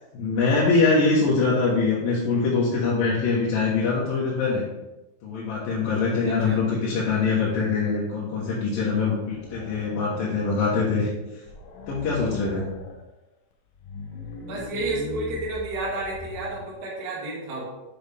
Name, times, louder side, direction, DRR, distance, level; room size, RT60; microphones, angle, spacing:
voice 1, 0.1-4.6 5.2-11.1 11.9-12.7, left 4 dB, 65° left, -6 dB, 2.4 m, -23 dB
voice 2, 6.3-6.6 14.5-17.7, right 2 dB, 60° right, -6 dB, 4.2 m, -31 dB
sound 1, 9.3-10.8 11.1-11.2 11.5-13.0 13.6-16.8, left 4 dB, 90° left, 2.1 m, -40 dB
8.3 x 6.4 x 3.4 m, 0.98 s
omnidirectional pair, 5.6 m